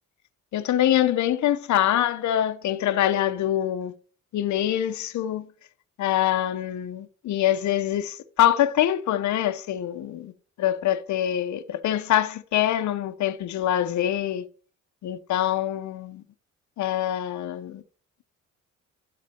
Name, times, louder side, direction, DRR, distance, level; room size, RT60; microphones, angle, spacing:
voice 1, 0.5-3.9 4.3-5.5 6.0-10.3 10.6-14.4 15.0-16.2 16.8-17.8, left 12 dB, 70° left, 0.8 m, -24 dB
12.0 x 4.1 x 4.3 m
cardioid pair, 90°, 30 cm